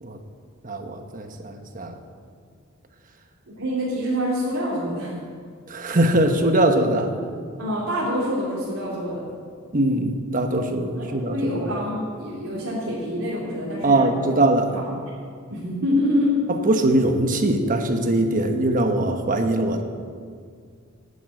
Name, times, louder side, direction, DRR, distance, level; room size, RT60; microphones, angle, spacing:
voice 1, 0.6-1.9 5.7-7.1 9.7-11.3 13.8-14.8 16.6-19.8, right 1 dB, 40° right, 5 dB, 1.1 m, -21 dB
voice 2, 3.5-5.1 7.6-9.2 10.9-14.3 14.7-14.9 15.5-16.4, equal, 75° right, -7 dB, 2.7 m, -26 dB
10.0 x 9.2 x 8.9 m, 2.1 s
head